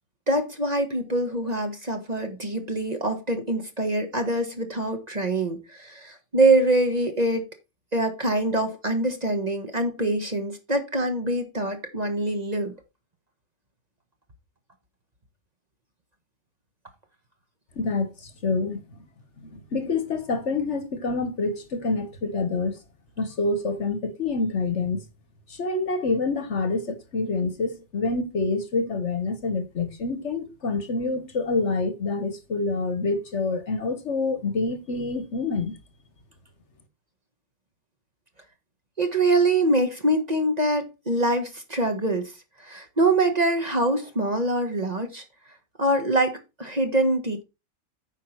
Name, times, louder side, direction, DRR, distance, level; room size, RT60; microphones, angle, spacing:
voice 1, 0.3-7.5 7.9-12.7 39.0-42.3 42.6-45.2 45.8-47.4, right 2 dB, 30° right, 1.4 m, -24 dB
voice 2, 17.8-18.8 19.4-22.8 23.2-25.0 25.5-35.8, left 3 dB, 55° left, 1.3 m, -27 dB
9.1 x 5.5 x 4.4 m
omnidirectional pair, 1.5 m